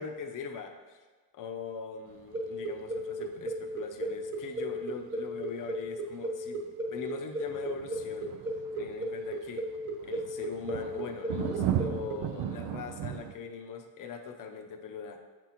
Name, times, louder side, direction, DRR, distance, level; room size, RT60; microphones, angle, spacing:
voice 1, 0.0-1.0 1.4-8.3 8.7-9.7 10.0-15.2, left 6 dB, 50° left, 4 dB, 0.8 m, -41 dB
sound 1, 2.1-3.0 3.3-4.4 4.6-4.7 5.2-5.4 5.9-6.1 6.9-7.1 7.5-13.3, right 10 dB, 85° right, 0.6 m, -36 dB
sound 2, 2.3-12.1, right 1 dB, 30° right, 1.2 m, -35 dB
7.8 x 6.1 x 3.0 m, 1.4 s
cardioid pair, 125°, 41 cm